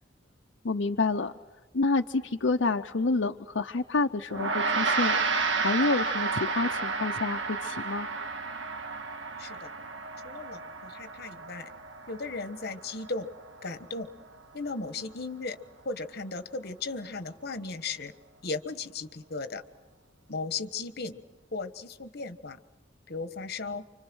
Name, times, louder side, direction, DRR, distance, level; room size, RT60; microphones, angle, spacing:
voice 1, 0.6-1.3 1.7-5.2 5.6-8.1, left 3 dB, 75° left, 4 dB, 0.7 m, -28 dB
Gong, 4.3-13.8, right 4 dB, 70° right, 1.6 m, -31 dB
voice 2, 9.4-9.7 10.2-11.7 12.1-13.3 13.6-14.1 14.5-15.6 15.8-18.1 18.4-19.6 20.3-21.2 21.5-22.6 23.1-23.8, left 3 dB, 60° left, 11 dB, 1.4 m, -36 dB
29.0 x 26.0 x 6.3 m, 1.2 s
head